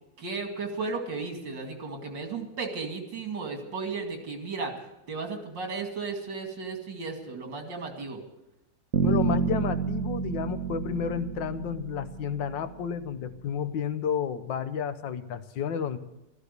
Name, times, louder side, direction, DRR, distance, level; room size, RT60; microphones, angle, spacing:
voice 1, 0.2-4.7 5.1-8.2, right 4 dB, 80° right, 4 dB, 2.9 m, -34 dB
Bass guitar, 8.9-12.9, right 6 dB, 50° right, 1.6 m, -29 dB
voice 2, 9.0-16.0, left 7 dB, 90° left, 11 dB, 1.7 m, -31 dB
15.0 x 13.5 x 6.7 m, 0.93 s
omnidirectional pair, 1.9 m